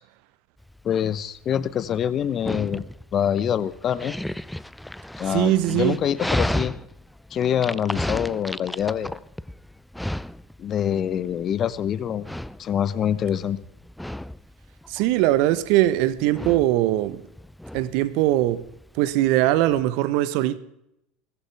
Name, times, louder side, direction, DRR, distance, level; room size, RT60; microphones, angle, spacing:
Dog, 0.6-19.8, left 1 dB, 5° left, 0.5 m, -34 dB
voice 1, 0.8-2.9 3.1-4.1 5.2-6.7 7.3-9.2 10.6-12.3 12.6-13.6, left 9 dB, 40° left, 1.0 m, -25 dB
voice 2, 5.3-6.0 14.9-17.2 17.7-18.6 18.9-20.6, right 15 dB, 60° right, 1.1 m, -21 dB
21.5 x 16.0 x 3.5 m
hypercardioid pair, 75°, 0 cm